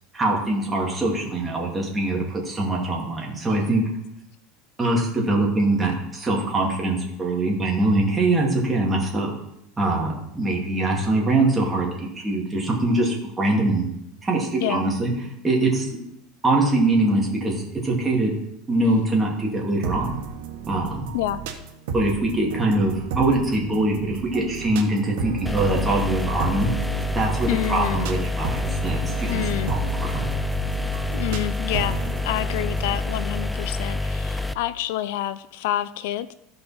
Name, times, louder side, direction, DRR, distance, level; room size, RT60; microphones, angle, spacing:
voice 1, 0.1-3.8 4.8-9.3 9.8-13.9 14.2-15.1 15.4-15.9 16.4-18.3 18.7-20.2 20.7-21.1 21.9-26.7 27.1-29.4 29.7-29.8 30.1-30.2, right 2 dB, 15° right, -2 dB, 2.4 m, -23 dB
sound 1, 19.8-33.0, right 5 dB, 85° right, 1.4 m, -33 dB
sound 2, 25.5-34.5, left 2 dB, ahead, 0.4 m, -27 dB
voice 2, 27.5-28.1 29.3-29.7 31.1-32.0 32.2-36.3, left 13 dB, 75° left, 16 dB, 0.4 m, -28 dB
14.5 x 5.5 x 4.3 m, 0.81 s
supercardioid pair, 145°, 0 cm